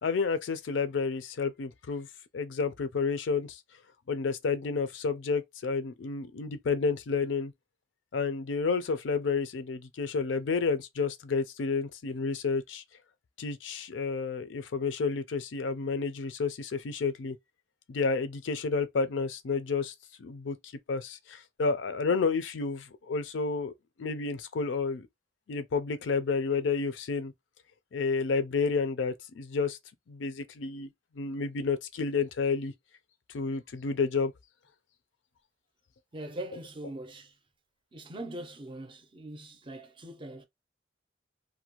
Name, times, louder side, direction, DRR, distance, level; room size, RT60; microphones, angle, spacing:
voice 1, 0.0-2.1 2.3-3.6 4.1-7.5 8.1-12.8 13.4-17.4 17.9-20.6 20.9-23.7 24.0-25.1 25.5-27.3 27.9-29.8 30.1-30.9 31.2-32.7 33.3-34.3, left 4 dB, 75° left, 0.4 m, -30 dB
voice 2, 36.1-37.4 37.9-40.5, right 1 dB, 25° right, 0.5 m, -42 dB
2.6 x 2.2 x 2.9 m
head